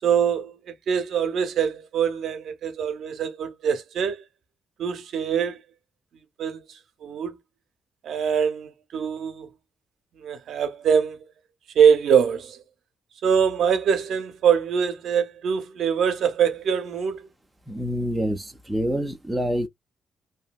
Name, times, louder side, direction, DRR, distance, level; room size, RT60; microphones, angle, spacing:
voice 1, 0.0-4.2 4.8-5.6 6.4-7.4 8.0-9.5 10.1-11.3 11.7-12.6 13.2-17.3, right 7 dB, 65° right, 0.6 m, -23 dB
voice 2, 17.7-19.7, equal, 5° right, 0.4 m, -27 dB
2.7 x 2.6 x 2.2 m
cardioid pair, 150°, 0 cm